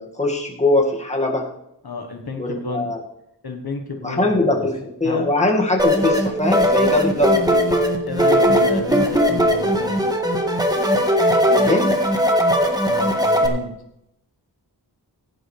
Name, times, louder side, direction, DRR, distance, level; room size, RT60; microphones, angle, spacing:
voice 1, 0.0-1.5 2.4-3.0 4.0-7.8 11.5-12.0, left 2 dB, 15° left, -1 dB, 2.2 m, -21 dB
voice 2, 1.8-2.9 3.4-4.7 5.0-5.3 8.1-10.0 12.9-13.7, left 4 dB, 65° left, 3 dB, 1.5 m, -30 dB
sound 1, 5.8-13.5, equal, 10° right, 1.6 m, -18 dB
16.0 x 10.5 x 3.4 m, 0.80 s
wide cardioid pair, 95°, 40 cm